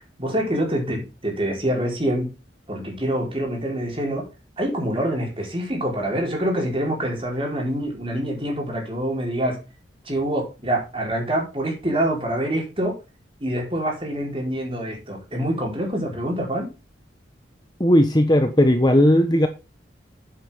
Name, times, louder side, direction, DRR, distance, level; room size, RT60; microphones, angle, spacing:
voice 1, 0.2-2.3 2.7-4.3 4.6-9.6 10.0-12.9 13.4-16.7, right 1 dB, 30° right, 4.7 m, -26 dB
voice 2, 17.8-19.5, left 1 dB, 20° left, 1.1 m, -16 dB
9.6 x 9.2 x 3.6 m
head